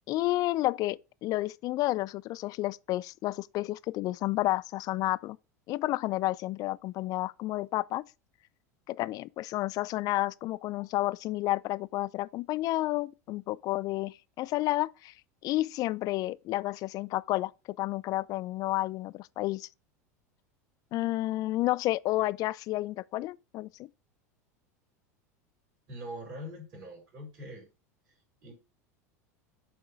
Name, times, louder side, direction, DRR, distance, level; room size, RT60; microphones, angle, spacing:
voice 1, 0.1-5.4 5.7-8.0 8.9-15.1 15.4-17.5 17.8-19.7 20.9-23.9, left 17 dB, 45° left, 0.4 m, -31 dB
voice 2, 25.9-27.7 28.1-28.5, equal, 55° right, 3.6 m, -43 dB
7.6 x 2.9 x 4.7 m
hypercardioid pair, 85°, 9 cm